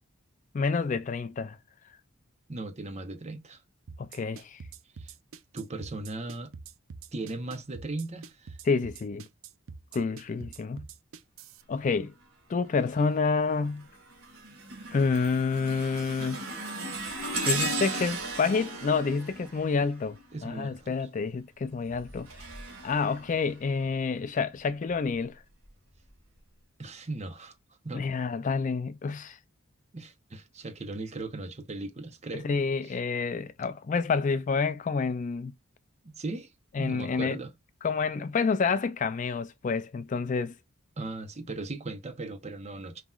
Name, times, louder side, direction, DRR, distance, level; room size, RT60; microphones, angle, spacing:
voice 1, 0.5-1.6 4.0-4.6 8.6-9.3 9.9-10.9 11.7-12.1 12.5-13.9 14.9-16.7 17.4-20.2 20.4-22.3 22.8-25.4 27.9-29.4 32.3-35.5 36.8-37.4 37.8-40.5, left 4 dB, 35° left, 0.3 m, -28 dB
voice 2, 2.5-3.6 4.9-5.1 5.5-6.5 7.1-8.6 20.3-21.0 26.8-27.6 27.8-28.1 29.9-32.6 32.8-33.0 36.0-36.5 36.8-37.5 41.0-43.0, right 2 dB, 30° right, 0.8 m, -38 dB
sound 1, 3.9-11.6, right 5 dB, 65° right, 0.5 m, -45 dB
sound 2, 12.8-13.2 13.7-20.5 21.7-23.9 24.6-24.7 25.6-25.7, right 2 dB, 90° right, 1.8 m, -36 dB
5.5 x 3.0 x 2.4 m
head